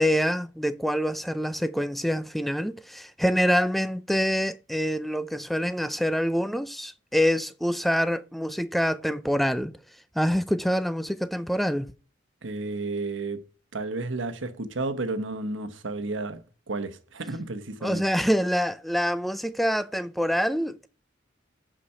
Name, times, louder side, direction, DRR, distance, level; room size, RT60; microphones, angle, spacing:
voice 1, 0.0-9.7 10.2-11.9 17.8-20.9, equal, ahead, 0.4 m, -26 dB
voice 2, 12.4-13.4 13.7-18.0, right 3 dB, 85° right, 1.1 m, -32 dB
8.6 x 5.1 x 5.5 m
head